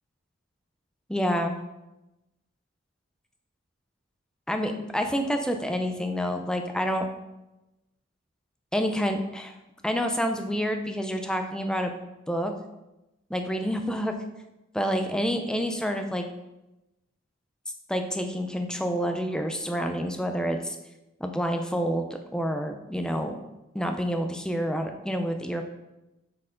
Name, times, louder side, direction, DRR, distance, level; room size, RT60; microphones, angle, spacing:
voice 1, 1.1-1.6 4.5-7.0 8.7-9.5 9.8-11.9 12.3-12.5 13.3-14.1 14.7-16.2 17.9-20.8 21.2-22.0 22.3-23.3 23.7-25.7, equal, 5° left, 5 dB, 0.5 m, -28 dB
8.2 x 4.5 x 3.7 m, 0.97 s
head